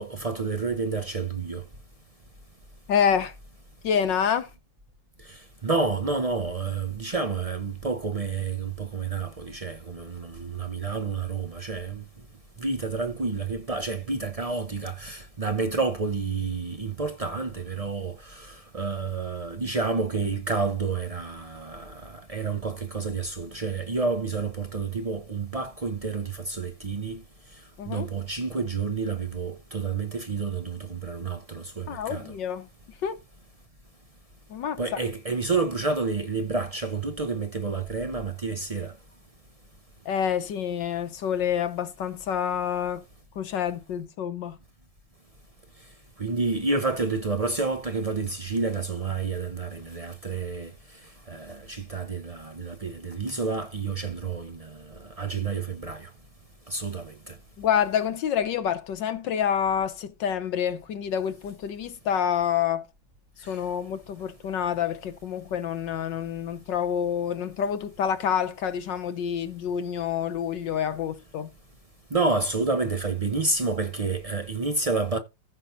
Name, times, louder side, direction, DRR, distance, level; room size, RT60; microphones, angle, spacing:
voice 1, 0.0-1.6 5.3-12.0 12.6-27.2 27.9-32.4 34.8-38.9 46.2-50.7 51.3-56.1 56.7-57.4 63.4-63.6 72.1-75.2, right 4 dB, 60° right, 0.3 m, -29 dB
voice 2, 2.9-3.3 3.8-4.5 27.8-28.1 31.9-32.7 33.0-33.2 34.5-34.8 40.0-43.0 43.4-44.6 57.6-62.9 63.4-71.5, left 8 dB, 70° left, 1.5 m, -27 dB
15.5 x 5.7 x 2.6 m
omnidirectional pair, 2.1 m